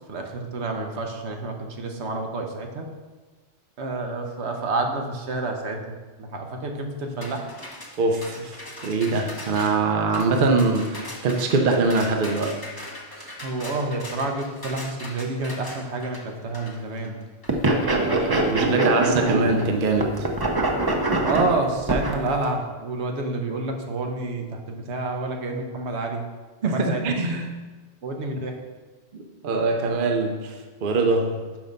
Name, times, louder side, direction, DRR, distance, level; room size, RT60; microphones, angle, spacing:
voice 1, 0.1-2.9 3.8-7.5 13.4-17.2 17.9-18.5 21.2-26.2 26.6-27.0 28.0-28.6, right 2 dB, 75° right, 3 dB, 1.1 m, -29 dB
sound 1, 7.2-17.6, left 1 dB, 20° left, 0.9 m, -40 dB
voice 2, 8.0-12.5 13.2-13.4 18.3-20.3 26.6-27.5 29.1-31.4, right 3 dB, 55° right, 3 dB, 0.8 m, -23 dB
sound 2, 17.5-19.7 20.0-22.3, right 2 dB, 25° right, 0.6 m, -23 dB
5.8 x 5.4 x 5.2 m, 1.3 s
omnidirectional pair, 1.1 m